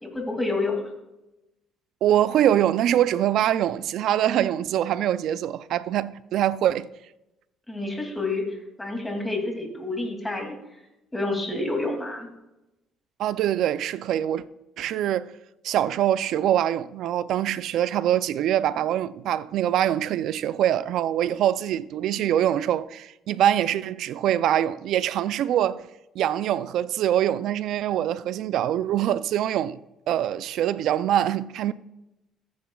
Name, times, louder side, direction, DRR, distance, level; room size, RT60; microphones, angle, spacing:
voice 1, 0.0-0.8 7.7-10.5 11.1-12.3, left 2 dB, 10° left, 2.5 m, -29 dB
voice 2, 2.0-6.9 13.2-14.4 14.8-15.3 15.6-25.9 26.2-29.8 30.1-31.7, right 11 dB, 70° right, 0.4 m, -24 dB
14.5 x 9.5 x 2.3 m
cardioid pair, 100°, 0 cm